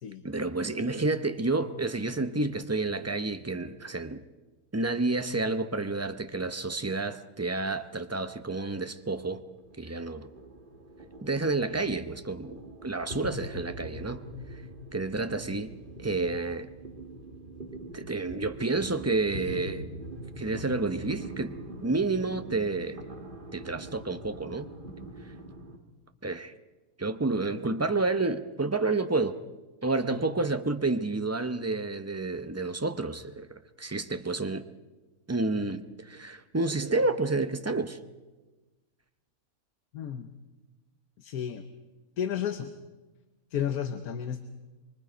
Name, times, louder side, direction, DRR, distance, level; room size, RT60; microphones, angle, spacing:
voice 1, 0.2-4.2 4.7-9.4 9.8-10.3 11.2-14.6 14.9-15.7 16.0-16.7 17.9-19.9 20.4-23.0 23.5-24.7 26.2-26.5 27.0-29.4 29.8-34.7 35.3-38.0, right 3 dB, 20° right, 0.5 m, -30 dB
sound 1, 9.0-25.8, right 1 dB, 35° right, 1.7 m, -43 dB
voice 2, 39.9-40.3 41.2-41.6 42.2-42.7 43.5-44.4, left 9 dB, 75° left, 1.4 m, -32 dB
24.5 x 24.0 x 5.1 m
omnidirectional pair, 1.6 m